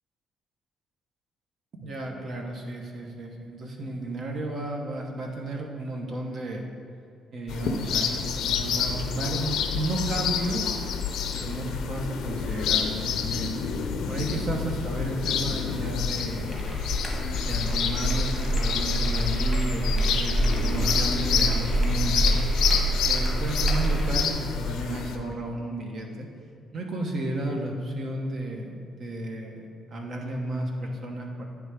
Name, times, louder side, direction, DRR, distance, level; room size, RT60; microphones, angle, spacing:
voice 1, 1.8-6.7 7.3-10.7 11.3-13.5 14.1-16.7 17.5-22.4 23.1-26.3 26.7-31.4, right 1 dB, 60° right, 1 dB, 1.1 m, -33 dB
sound 1, 7.5-25.2, left 7 dB, 80° left, 0.5 m, -28 dB
sound 2, 16.5-24.3, right 2 dB, 20° right, 1.7 m, -26 dB
9.1 x 3.4 x 4.9 m, 2.4 s
cardioid pair, 90°, 0 cm